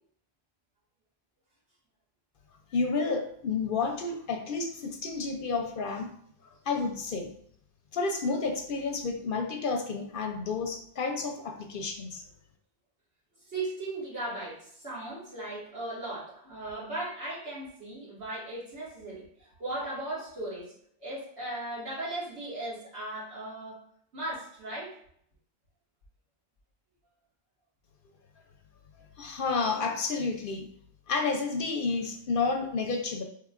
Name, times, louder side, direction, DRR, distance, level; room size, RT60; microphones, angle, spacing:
voice 1, 2.7-6.1 6.7-7.3 7.9-12.2 29.2-30.7 31.1-33.2, left 4 dB, 60° left, 4 dB, 0.7 m, -30 dB
voice 2, 13.5-23.8 24.1-24.9, right 2 dB, 80° right, -7 dB, 2.1 m, -37 dB
4.5 x 3.3 x 2.4 m, 0.66 s
omnidirectional pair, 1.1 m